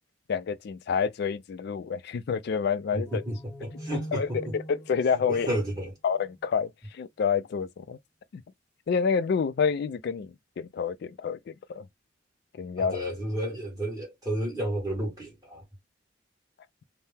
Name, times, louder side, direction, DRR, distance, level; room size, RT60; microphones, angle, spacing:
voice 1, 0.3-3.2 3.9-5.5 6.0-8.0 8.3-8.4 8.9-11.8 12.5-13.0, left 6 dB, 60° left, 0.3 m, -28 dB
voice 2, 2.9-4.5 5.3-5.9 12.8-15.6, right 1 dB, 20° right, 1.4 m, -32 dB
sound 1, 3.1-6.5, equal, 15° left, 0.6 m, -43 dB
2.7 x 2.0 x 3.4 m
head